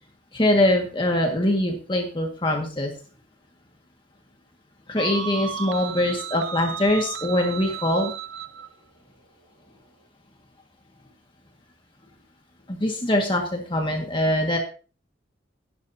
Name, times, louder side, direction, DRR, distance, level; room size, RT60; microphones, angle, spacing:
voice 1, 0.3-2.9 4.9-8.1 12.7-14.6, left 1 dB, 25° left, 1 dB, 1.8 m, -23 dB
sound 1, 5.0-8.7, right 7 dB, 90° right, 1.0 m, -34 dB
17.0 x 11.5 x 2.8 m, 0.37 s
head